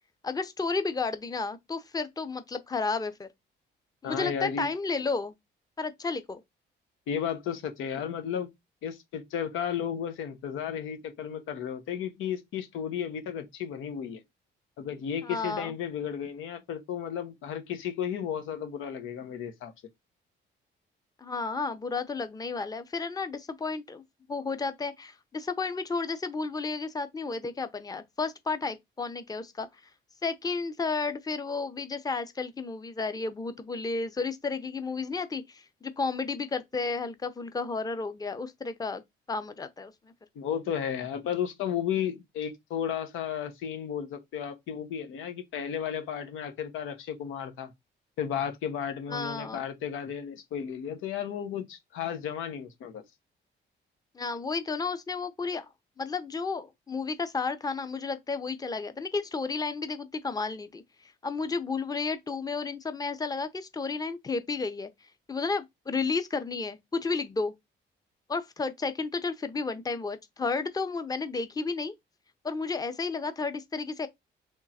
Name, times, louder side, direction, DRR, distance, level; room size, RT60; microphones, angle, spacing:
voice 1, 0.2-3.3 4.0-5.3 5.8-6.4 15.2-15.7 21.2-24.0 24.3-29.7 30.2-39.0 39.3-40.1 49.1-49.6 54.1-55.7 56.0-64.9 65.3-67.5 68.3-71.9 72.4-74.1, left 4 dB, 20° left, 0.7 m, -32 dB
voice 2, 4.0-4.7 7.1-8.5 8.8-14.2 14.8-19.7 40.3-47.7 48.2-53.0, left 8 dB, 85° left, 1.0 m, -33 dB
3.7 x 3.1 x 4.1 m
cardioid pair, 90°, 20 cm